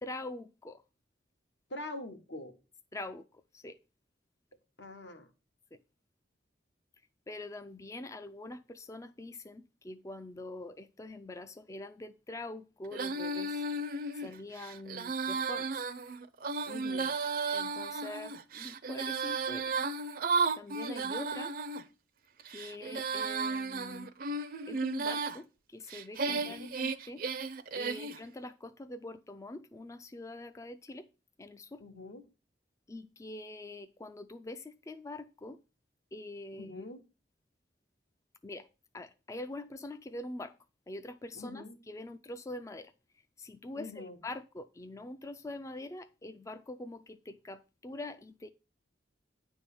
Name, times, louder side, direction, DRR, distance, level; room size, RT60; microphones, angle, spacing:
voice 1, 0.0-0.8 2.9-3.8 5.7-5.8 7.3-13.6 14.1-15.8 17.5-19.7 20.6-21.6 22.5-24.1 24.7-27.5 27.7-31.1 31.4-31.8 32.9-35.6 36.1-36.9 38.4-38.7 38.9-40.6 40.9-42.9 43.4-48.5, left 2 dB, 15° left, 0.3 m, -44 dB
voice 2, 1.7-2.5 4.8-5.3 16.7-17.1 26.2-26.7 31.8-32.2 36.5-37.0 41.4-41.8 43.8-44.2, left 2 dB, 80° left, 1.4 m, -44 dB
Female singing, 12.9-21.8 22.4-25.4 25.9-28.2, right 4 dB, 50° right, 0.5 m, -34 dB
9.6 x 3.5 x 6.8 m
head